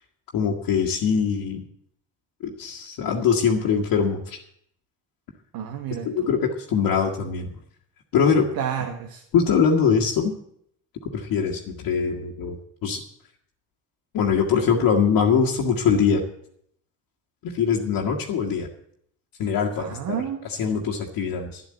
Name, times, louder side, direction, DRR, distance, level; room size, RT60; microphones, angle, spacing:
voice 1, 0.3-1.6 2.4-4.4 6.0-7.6 8.1-8.5 9.3-10.3 11.1-13.0 14.1-16.2 17.4-18.7 19.4-20.2 20.6-21.6, left 6 dB, 60° left, -1 dB, 1.7 m, -22 dB
voice 2, 5.5-6.3 8.5-9.2 19.8-20.5, right 9 dB, 60° right, 5 dB, 1.4 m, -30 dB
12.0 x 9.8 x 7.6 m, 0.70 s
figure-of-eight pair, 45°, 39 cm